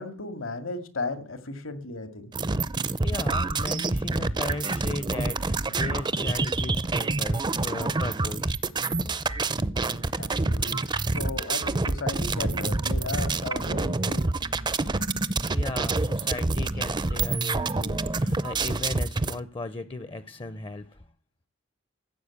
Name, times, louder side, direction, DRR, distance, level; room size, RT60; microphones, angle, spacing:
voice 1, 0.0-2.3 10.2-10.8 11.1-14.2, left 3 dB, 75° left, 2.2 m, -35 dB
sound 1, 2.3-19.4, right 3 dB, 20° right, 0.6 m, -27 dB
voice 2, 2.7-8.6 15.2-21.1, left 2 dB, 25° left, 0.7 m, -37 dB
15.0 x 7.2 x 8.5 m
head